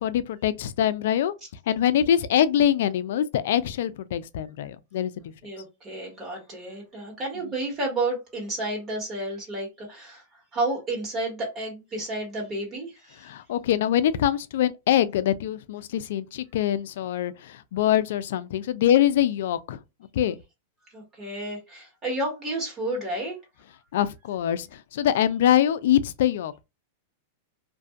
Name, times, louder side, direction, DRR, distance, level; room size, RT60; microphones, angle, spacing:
voice 1, 0.0-1.3 1.7-5.3 13.2-19.8 20.1-20.4 23.9-26.6, left 10 dB, 70° left, 0.3 m, -24 dB
voice 2, 5.4-10.2 10.5-13.3 20.9-23.3, right 2 dB, 25° right, 1.6 m, -31 dB
2.5 x 2.4 x 2.4 m
supercardioid pair, 140°, 0 cm